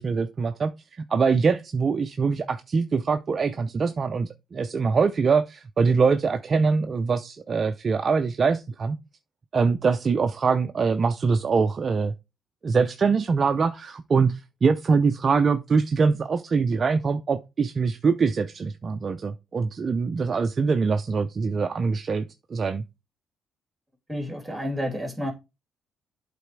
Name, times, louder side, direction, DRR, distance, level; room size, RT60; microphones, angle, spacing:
voice 1, 0.0-9.0 9.5-12.1 12.6-22.2 22.5-22.8, right 5 dB, 40° right, 0.5 m, -23 dB
voice 2, 24.1-25.3, equal, 10° right, 2.8 m, -30 dB
8.3 x 4.2 x 4.6 m
cardioid pair, 90°, 0 cm